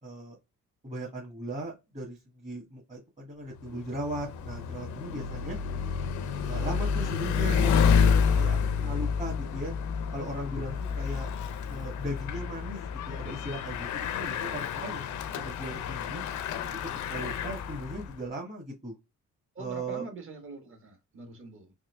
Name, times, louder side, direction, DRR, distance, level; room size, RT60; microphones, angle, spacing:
voice 1, 0.0-0.4 0.8-5.6 6.5-9.7 10.1-11.3 11.7-12.8 13.1-16.2 16.7-16.8 17.1-18.9 19.6-20.0, right 1 dB, 25° right, 1.3 m, -38 dB
Bicycle, 3.5-18.2, left 6 dB, 75° left, 0.6 m, -29 dB
voice 2, 19.5-21.7, right 3 dB, 45° right, 1.6 m, -44 dB
3.6 x 2.7 x 3.3 m
cardioid pair, 90°, 30 cm